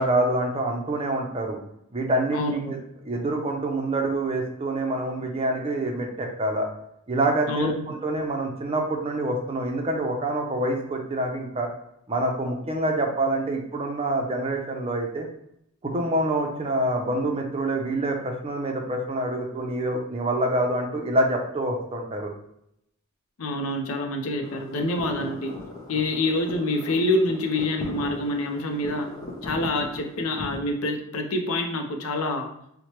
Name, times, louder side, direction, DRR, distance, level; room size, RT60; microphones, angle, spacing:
voice 1, 0.0-1.6 1.9-2.8 3.0-6.7 7.1-11.7 12.1-15.3 15.8-22.3, right 1 dB, 25° right, 2 dB, 0.5 m, -26 dB
voice 2, 7.5-7.8 23.4-25.5 25.9-29.1 29.4-32.5, left 2 dB, 80° left, 4 dB, 0.5 m, -26 dB
sound 1, 24.4-30.6, left 1 dB, 20° left, 0.7 m, -38 dB
4.3 x 2.1 x 3.0 m, 0.76 s
head